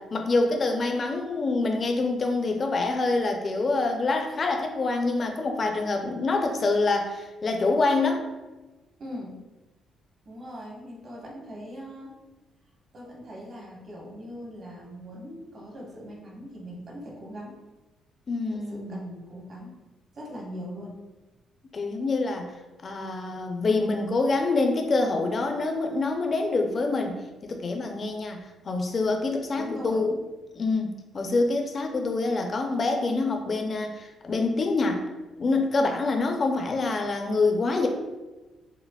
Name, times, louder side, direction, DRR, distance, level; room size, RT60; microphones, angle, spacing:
voice 1, 0.1-8.2 18.3-19.0 21.7-22.5 22.8-30.2 30.5-35.0 35.4-37.9, left 3 dB, 40° left, 4 dB, 0.5 m, -26 dB
voice 2, 9.0-9.3 10.2-12.2 12.9-17.5 18.5-19.8 20.1-21.0 29.6-30.0, equal, 50° right, -3 dB, 1.1 m, -40 dB
5.6 x 2.0 x 2.3 m, 1.1 s
cardioid pair, 90°, 0 cm